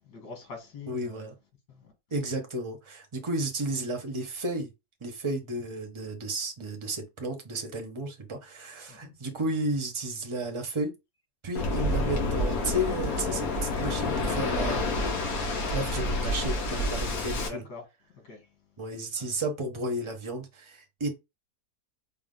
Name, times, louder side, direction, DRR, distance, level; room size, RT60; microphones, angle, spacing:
voice 1, 0.0-1.3 1.7-1.9 8.9-9.1 17.3-17.8 18.1-18.5 19.2-19.3, left 4 dB, 90° left, 2.0 m, -44 dB
voice 2, 0.9-1.3 2.1-4.7 5.0-10.9 11.4-15.1 15.7-17.6 18.8-21.1, right 1 dB, 25° right, 0.6 m, -33 dB
Waves surf, 11.6-17.5, left 2 dB, 60° left, 1.5 m, -28 dB
4.7 x 2.0 x 3.8 m
omnidirectional pair, 1.7 m